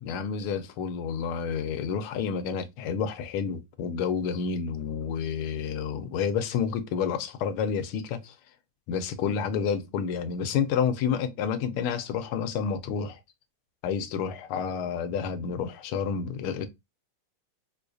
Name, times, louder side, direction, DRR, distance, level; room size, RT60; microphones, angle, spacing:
voice 1, 0.0-8.3 8.9-13.2 13.8-16.7, left 7 dB, 85° left, 1.5 m, -29 dB
4.8 x 2.3 x 2.4 m
omnidirectional pair, 2.4 m